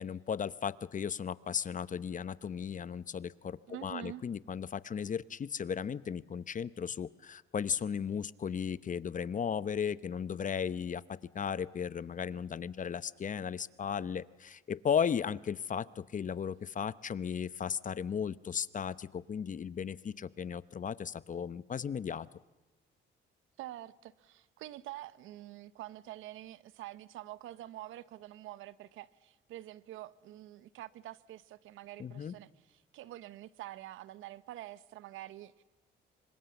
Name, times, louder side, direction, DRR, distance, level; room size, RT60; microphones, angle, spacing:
voice 1, 0.0-22.3 32.0-32.3, left 7 dB, 40° left, 0.8 m, -36 dB
voice 2, 3.7-4.2 23.6-35.6, right 14 dB, 90° right, 0.9 m, -47 dB
26.0 x 25.0 x 7.1 m
cardioid pair, 90°, 20 cm